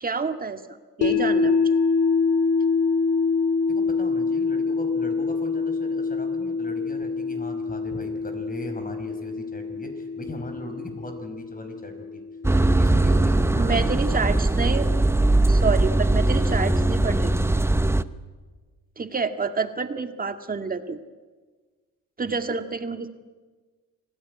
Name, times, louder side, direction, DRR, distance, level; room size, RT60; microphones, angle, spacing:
voice 1, 0.0-0.6 1.0-1.7 13.6-14.9 15.5-17.3 19.0-21.0 22.2-23.1, right 4 dB, 30° right, 7 dB, 2.0 m, -28 dB
sound 1, 1.0-13.1, left 4 dB, 80° left, 4.1 m, -25 dB
voice 2, 3.7-12.2 12.5-13.8, left 1 dB, 30° left, 6 dB, 5.0 m, -39 dB
sound 2, 12.4-18.0, right 2 dB, 10° right, 0.8 m, -20 dB
26.5 x 17.0 x 9.6 m, 1.4 s
cardioid pair, 90°, 30 cm